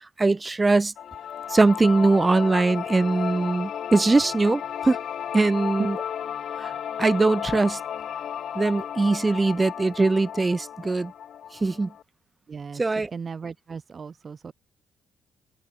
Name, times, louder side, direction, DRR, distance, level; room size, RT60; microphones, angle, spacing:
voice 1, 0.2-0.9 1.5-5.0 5.3-6.0 6.6-6.7 7.0-7.8 8.5-11.1 11.6-11.9 12.8-13.1, right 3 dB, 20° right, 0.5 m, -21 dB
sound 1, 1.0-12.0, left 9 dB, 65° left, 2.5 m, -34 dB
voice 2, 12.5-12.8 13.1-14.5, right 5 dB, 40° right, 4.0 m, -37 dB
open air
cardioid pair, 90°, 0 cm